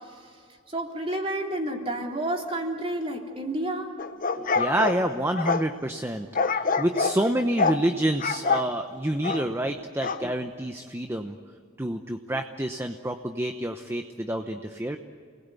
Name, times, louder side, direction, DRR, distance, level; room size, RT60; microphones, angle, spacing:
voice 1, 0.7-3.9, right 1 dB, 25° right, 1 dB, 3.4 m, -30 dB
sound 1, 4.0-5.7 6.3-7.2 7.6-7.8 8.2-8.7 9.2-9.5 10.0-10.2, left 4 dB, 40° left, 0.9 m, -26 dB
voice 2, 4.4-11.4 11.8-15.0, right 1 dB, 10° right, 6 dB, 0.9 m, -28 dB
29.5 x 20.5 x 8.4 m, 2.2 s
head